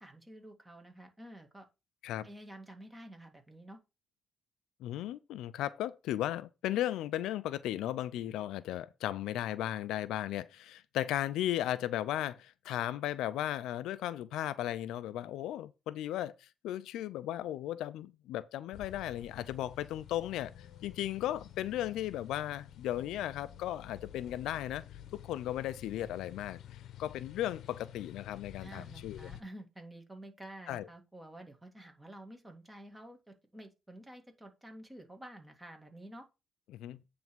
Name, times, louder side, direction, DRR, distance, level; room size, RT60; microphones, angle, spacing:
voice 1, 0.0-1.7 2.2-3.8 28.6-36.3, right 1 dB, 15° right, 2.1 m, -50 dB
voice 2, 4.8-24.8 25.1-29.3 30.7-30.9 36.7-37.0, left 13 dB, 90° left, 0.5 m, -36 dB
sound 1, 18.7-29.4, left 10 dB, 75° left, 0.9 m, -50 dB
9.0 x 3.5 x 6.1 m
cardioid pair, 90°, 0 cm